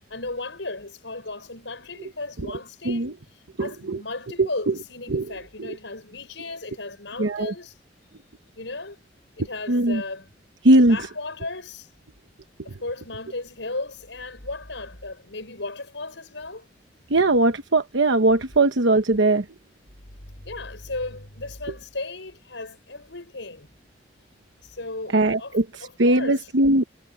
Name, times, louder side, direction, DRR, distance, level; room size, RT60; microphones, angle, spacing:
voice 1, 0.1-7.8 8.6-9.0 9.4-10.3 10.7-11.9 12.6-16.7 20.4-23.7 24.6-26.5, left 2 dB, 85° left, 5.9 m, -35 dB
voice 2, 3.6-4.0 4.4-4.5 5.1-5.3 7.2-7.5 9.7-10.0 10.6-11.0 17.1-19.4 25.1-25.6 26.0-26.8, right 2 dB, 85° right, 1.0 m, -19 dB
head